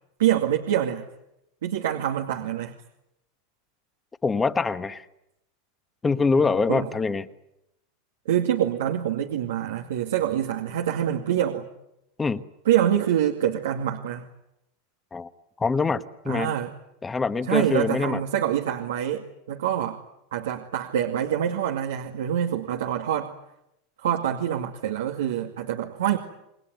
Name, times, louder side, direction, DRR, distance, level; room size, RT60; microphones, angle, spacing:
voice 1, 0.2-1.1 1.6-2.7 6.7-6.9 8.3-11.7 12.7-14.3 16.3-16.7 17.5-20.0 20.3-23.3 24.0-26.2, right 10 dB, 90° right, 2 dB, 2.2 m, -25 dB
voice 2, 4.2-5.1 6.0-7.3 12.2-12.4 15.1-15.3 15.6-16.5 17.0-18.2, left 4 dB, 15° left, 11 dB, 1.4 m, -24 dB
28.0 x 20.5 x 9.5 m, 0.84 s
supercardioid pair, 135°, 0 cm